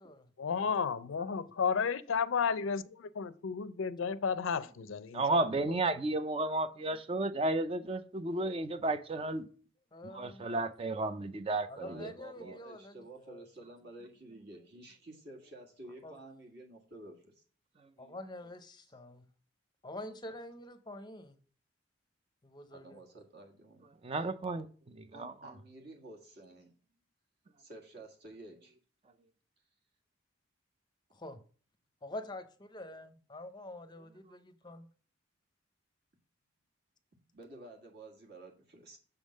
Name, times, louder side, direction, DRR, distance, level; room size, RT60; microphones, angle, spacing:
voice 1, 0.4-5.2 5.7-5.8, left 6 dB, 80° left, 0.5 m, -32 dB
voice 2, 5.1-9.5 10.0-12.1 12.4-12.5 24.0-25.5, right 2 dB, 30° right, 0.4 m, -33 dB
voice 3, 9.9-10.4 11.7-13.4 16.0-16.2 18.0-19.3 19.8-21.4 22.4-23.0 31.1-31.4 32.0-34.9, left 1 dB, 20° left, 0.6 m, -46 dB
voice 4, 11.8-17.4 18.8-18.9 22.7-24.1 25.1-26.7 27.6-28.7 37.3-39.0, right 2 dB, 55° right, 1.6 m, -51 dB
6.9 x 3.6 x 6.2 m
head